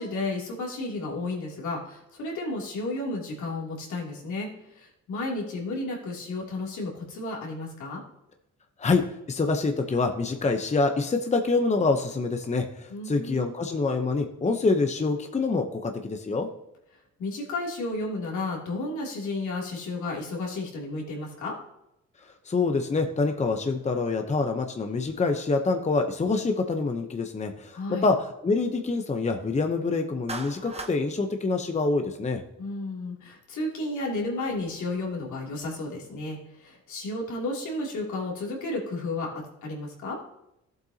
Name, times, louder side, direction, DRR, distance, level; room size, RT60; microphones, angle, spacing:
voice 1, 0.0-4.5 4.7-8.0 12.9-13.5 17.2-21.5 27.7-28.0 32.6-40.2, left 2 dB, 75° left, -2 dB, 3.0 m, -32 dB
voice 2, 9.3-16.5 22.5-32.4, left 3 dB, 25° left, 5 dB, 0.9 m, -26 dB
Clapping, 30.3-31.0, right 3 dB, 20° right, 1.0 m, -36 dB
14.0 x 8.0 x 2.9 m, 0.84 s
cardioid pair, 90°, 30 cm